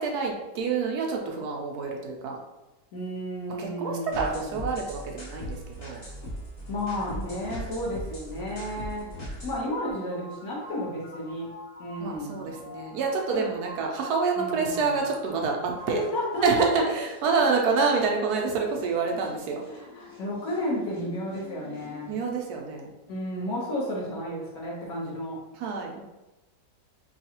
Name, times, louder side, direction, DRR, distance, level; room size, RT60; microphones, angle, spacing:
voice 1, 0.0-2.4 3.6-6.0 8.9-9.3 12.0-16.0 16.4-19.6 22.0-22.9 25.6-26.0, right 4 dB, 70° right, 1 dB, 1.0 m, -27 dB
voice 2, 2.9-4.5 6.7-11.5 11.8-12.5 13.3-13.5 14.4-14.9 15.9-16.5 16.8-16.9 19.7-22.2 23.1-25.4, equal, 55° left, -4 dB, 1.4 m, -32 dB
sound 1, 4.1-22.1, equal, 35° left, 1.2 m, -42 dB
4.6 x 2.3 x 2.9 m, 1.0 s
omnidirectional pair, 2.0 m